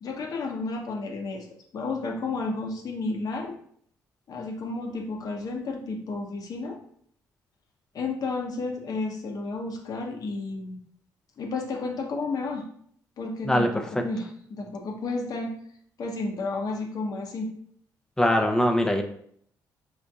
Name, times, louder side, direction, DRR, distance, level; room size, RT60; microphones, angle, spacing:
voice 1, 0.0-1.5 1.7-3.5 4.3-6.8 7.9-10.8 11.4-12.6 13.2-15.5 16.0-17.5, left 3 dB, 60° left, 2 dB, 0.8 m, -32 dB
voice 2, 18.2-19.0, equal, 10° left, 3 dB, 0.6 m, -21 dB
4.8 x 2.7 x 2.4 m, 0.64 s
supercardioid pair, 65°, 7 cm